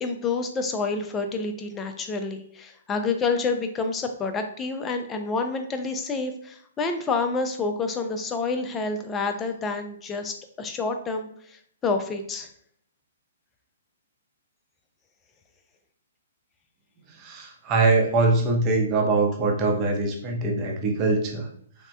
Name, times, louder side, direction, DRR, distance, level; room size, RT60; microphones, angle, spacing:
voice 1, 0.0-12.5, left 4 dB, 20° left, 5 dB, 0.4 m, -28 dB
voice 2, 17.2-21.5, right 3 dB, 30° right, 1 dB, 0.7 m, -23 dB
3.4 x 2.1 x 2.7 m, 0.64 s
hypercardioid pair, 130°, 0 cm